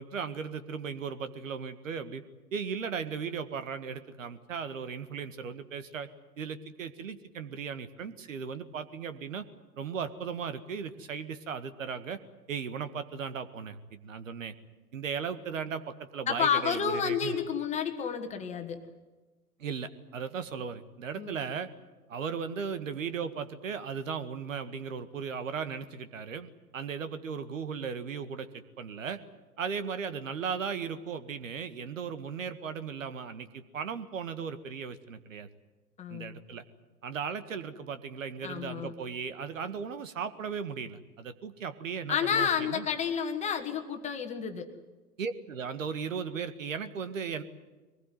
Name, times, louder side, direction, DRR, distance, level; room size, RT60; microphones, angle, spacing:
voice 1, 0.0-2.2 2.5-6.1 6.4-9.4 9.8-12.2 12.5-14.5 14.9-17.4 19.6-21.7 22.1-28.5 28.8-29.2 29.6-35.5 36.1-36.6 37.0-42.9 45.2-47.4, right 6 dB, 55° right, 11 dB, 1.9 m, -37 dB
voice 2, 16.3-18.8 21.2-21.3 36.0-36.3 38.4-38.9 42.1-44.7, left 7 dB, 15° left, 6 dB, 1.9 m, -30 dB
23.5 x 20.0 x 9.5 m, 1.2 s
figure-of-eight pair, 115°, 47 cm